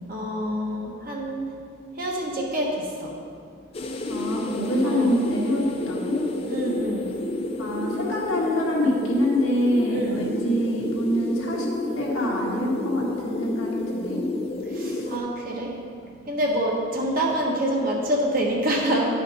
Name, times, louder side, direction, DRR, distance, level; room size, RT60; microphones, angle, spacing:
voice 1, 0.1-1.5 2.0-3.1 4.8-5.1 6.5-7.1 9.9-10.2 14.7-15.7 16.3-19.0, right 1 dB, 45° right, -2 dB, 1.2 m, -26 dB
sound 1, 3.7-15.2, left 2 dB, 30° left, 0.5 m, -30 dB
voice 2, 4.1-6.2 7.6-11.7 11.9-14.2 14.8-15.1 16.0-16.3, equal, 90° left, -3 dB, 1.7 m, -25 dB
10.5 x 5.1 x 4.1 m, 2.2 s
head